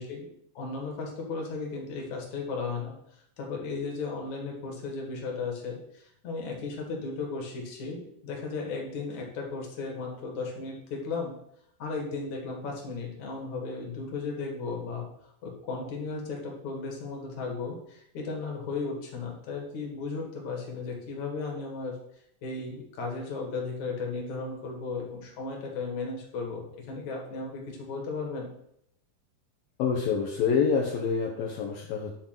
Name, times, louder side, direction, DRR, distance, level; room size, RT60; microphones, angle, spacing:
voice 1, 0.0-11.3 11.8-15.1 15.4-22.0 22.4-28.5, left 4 dB, 55° left, 0 dB, 2.5 m, -35 dB
voice 2, 29.8-32.1, left 6 dB, 75° left, 0 dB, 2.2 m, -27 dB
10.5 x 3.9 x 5.8 m, 0.74 s
omnidirectional pair, 4.9 m